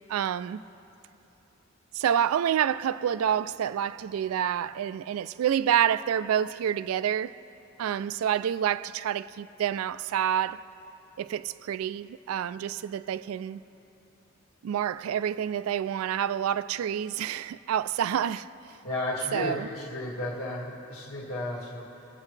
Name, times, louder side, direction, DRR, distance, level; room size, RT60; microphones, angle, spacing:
voice 1, 0.1-0.6 1.9-7.4 7.8-10.6 11.2-13.6 14.6-18.5 19.3-19.7, right 9 dB, 80° right, 0.3 m, -28 dB
voice 2, 18.8-22.1, left 2 dB, 75° left, 1.8 m, -34 dB
24.0 x 8.3 x 3.2 m
head